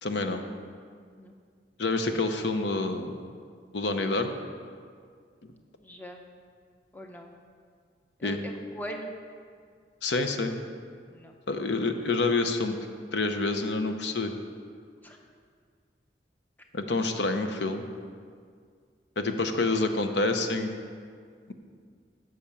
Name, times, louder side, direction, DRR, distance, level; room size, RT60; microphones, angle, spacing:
voice 1, 0.0-0.4 1.8-3.1 3.7-4.3 8.2-8.4 10.0-10.6 11.5-12.8 13.1-14.3 16.7-17.9 19.2-20.8, left 3 dB, 80° left, 6 dB, 0.8 m, -27 dB
voice 2, 5.8-6.2 6.9-7.3 8.2-9.1 11.1-11.4 15.0-15.2, equal, 10° left, 2 dB, 0.7 m, -41 dB
10.0 x 6.3 x 7.0 m, 2.1 s
head